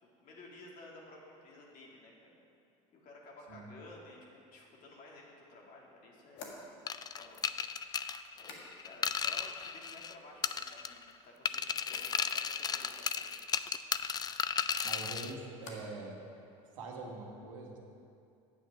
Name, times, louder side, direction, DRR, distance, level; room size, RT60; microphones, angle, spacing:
voice 1, 0.0-2.4 2.9-6.7 7.1-7.8 8.3-13.5, left 2 dB, 55° left, -2 dB, 2.2 m, -54 dB
sound 1, 6.3-9.2 9.4-10.0 10.4-11.0 11.8-12.2 14.6-16.1 16.3-16.9, left 3 dB, 75° left, 1.6 m, -54 dB
sound 2, 6.9-10.1 10.4-11.1 11.5-15.3, left 7 dB, 25° left, 0.4 m, -35 dB
voice 2, 14.8-16.2 16.7-17.8, right 3 dB, 90° right, 0 dB, 1.4 m, -44 dB
8.4 x 7.6 x 5.8 m, 2.6 s
supercardioid pair, 85°, 16 cm